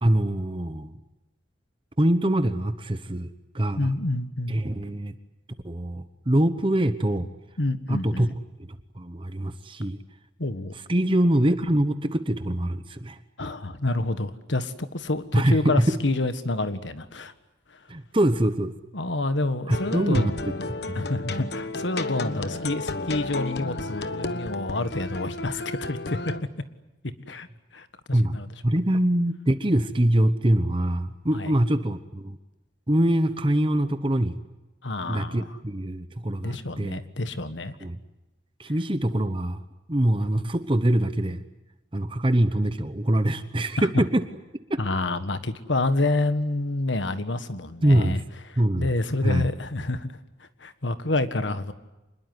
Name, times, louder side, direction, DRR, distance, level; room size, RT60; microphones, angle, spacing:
voice 1, 0.0-0.9 2.0-3.9 4.5-5.1 5.6-7.3 7.9-8.3 8.9-10.0 10.9-13.2 15.3-16.0 17.9-18.7 19.7-20.3 20.9-21.0 28.1-28.4 28.6-32.4 32.9-34.4 35.1-37.0 37.8-38.0 38.6-39.6 39.9-41.4 41.9-44.2 44.7-44.8 47.8-48.2 48.6-48.9 49.2-49.4, right 1 dB, 30° right, 10 dB, 1.0 m, -24 dB
voice 2, 3.7-4.6 7.6-8.3 10.4-10.7 13.4-17.3 17.7-17.9 18.9-20.2 20.9-26.3 27.3-27.5 27.7-28.5 31.3-31.5 34.8-35.6 36.4-37.7 43.8-44.0 44.8-48.2 48.5-50.2 50.6-51.7, left 2 dB, 80° left, 11 dB, 1.6 m, -28 dB
sound 1, 19.7-26.4, left 2 dB, 60° left, 1.3 m, -32 dB
26.5 x 21.5 x 9.7 m, 1.0 s
head